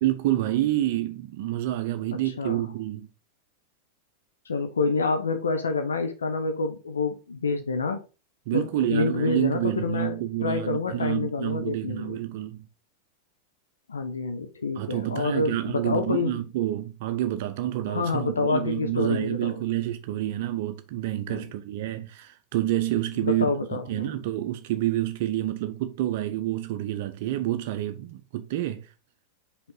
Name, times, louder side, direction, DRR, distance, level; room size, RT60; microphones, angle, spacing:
voice 1, 0.0-3.1 8.5-12.6 14.8-23.5 23.7-28.9, right 14 dB, 50° right, 0.5 m, -28 dB
voice 2, 2.2-2.7 4.4-8.0 8.5-10.1 10.4-12.2 13.9-16.3 17.9-19.5 21.3-21.5 23.2-24.1, left 4 dB, 70° left, 0.6 m, -28 dB
5.2 x 3.3 x 5.4 m
figure-of-eight pair, 90°, 0 cm